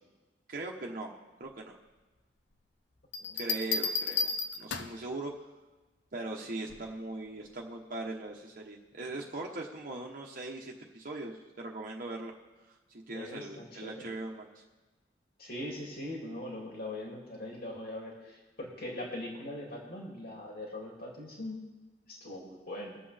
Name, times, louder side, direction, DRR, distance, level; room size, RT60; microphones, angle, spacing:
voice 1, 0.5-1.1 1.4-1.8 3.3-4.3 4.6-5.3 6.1-12.3 12.7-14.6, right 2 dB, 50° right, -1 dB, 1.2 m, -40 dB
Bell, 3.1-5.1 6.7-7.0, left 4 dB, 80° left, 0.8 m, -33 dB
voice 2, 13.1-14.1 15.4-21.6 22.1-23.0, left 1 dB, 55° left, -2 dB, 2.7 m, -41 dB
22.5 x 7.7 x 3.5 m, 1.2 s
head